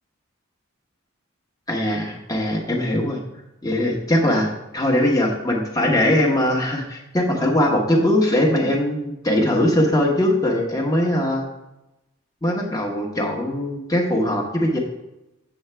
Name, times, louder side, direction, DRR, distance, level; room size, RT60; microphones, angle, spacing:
voice 1, 1.7-3.2 3.6-11.5 12.4-14.8, left 1 dB, 15° left, 0 dB, 1.2 m, -21 dB
7.9 x 7.1 x 3.4 m, 0.94 s
head